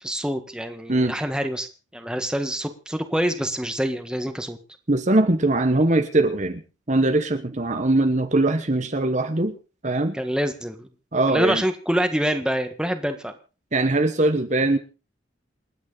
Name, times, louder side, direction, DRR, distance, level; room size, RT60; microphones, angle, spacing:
voice 1, 0.0-4.6 10.1-10.9 11.3-13.3, equal, 5° right, 7 dB, 1.6 m, -26 dB
voice 2, 4.9-6.6 6.9-9.6 9.8-10.2 11.1-11.6 13.7-14.8, right 2 dB, 35° right, 8 dB, 1.1 m, -21 dB
28.0 x 9.7 x 4.0 m, 0.35 s
head